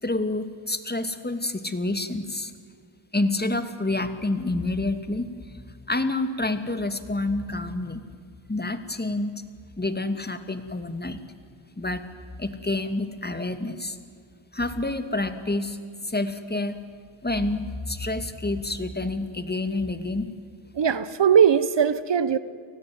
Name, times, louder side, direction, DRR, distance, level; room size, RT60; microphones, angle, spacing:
voice 1, 0.0-2.5 3.1-8.0 8.5-9.4 9.8-11.2 11.8-12.0 12.4-14.0 14.5-15.8 16.0-16.8 17.2-20.3, left 2 dB, 20° left, 10 dB, 2.6 m, -28 dB
voice 2, 20.8-22.4, right 8 dB, 60° right, 15 dB, 1.3 m, -20 dB
29.5 x 19.5 x 9.7 m, 2.3 s
cardioid pair, 60°, 50 cm